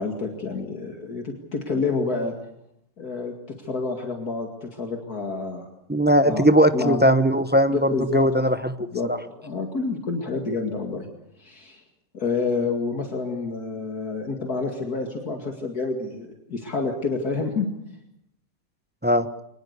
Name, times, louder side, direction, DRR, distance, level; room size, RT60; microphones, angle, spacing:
voice 1, 0.0-2.3 3.0-3.3 3.6-5.7 6.2-6.5 6.7-7.0 7.7-8.3 8.9-9.1 9.3-11.1 11.4-11.8 12.1-17.7, left 4 dB, 60° left, 3 dB, 2.7 m, -28 dB
voice 2, 5.9-9.2 19.0-19.3, equal, 15° right, 10 dB, 0.4 m, -19 dB
24.0 x 20.0 x 8.2 m, 0.78 s
omnidirectional pair, 1.9 m